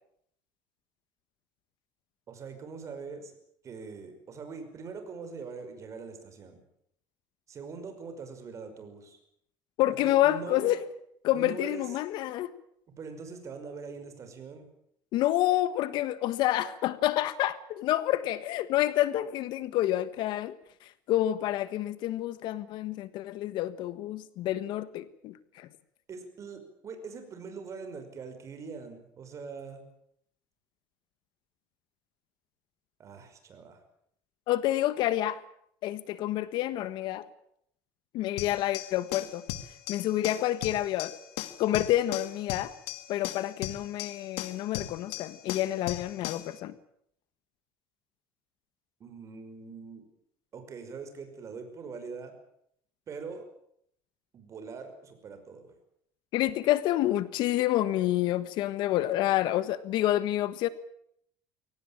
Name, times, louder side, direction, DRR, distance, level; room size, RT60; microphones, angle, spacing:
voice 1, 2.3-3.3 3.6-6.6 7.5-9.2 9.9-10.8 11.3-11.9 13.0-14.7 26.1-29.8 33.0-33.8 49.0-50.1 50.5-52.3 53.1-53.5 54.3-55.7, right 5 dB, 35° right, 5.6 m, -42 dB
voice 2, 9.8-10.8 11.2-12.5 15.1-20.5 21.1-25.7 34.5-35.4 35.8-37.3 38.1-39.4 39.9-41.2 41.6-42.7 43.1-46.7 56.3-60.7, left 14 dB, 60° left, 1.4 m, -28 dB
sound 1, 38.4-46.5, left 13 dB, 85° left, 2.3 m, -38 dB
23.0 x 18.0 x 9.0 m
cardioid pair, 130°, 9 cm